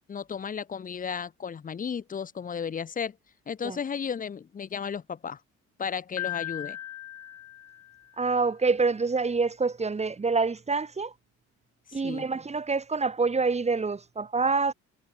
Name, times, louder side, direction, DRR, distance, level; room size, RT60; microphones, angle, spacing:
voice 1, 0.1-3.2 3.5-5.4 5.8-6.8 11.9-12.3, left 7 dB, 30° left, 0.6 m, -34 dB
Piano, 6.2-8.3, left 12 dB, 70° left, 2.1 m, -37 dB
voice 2, 8.2-11.1 11.9-14.7, right 4 dB, 20° right, 0.9 m, -26 dB
cardioid pair, 90°, 30 cm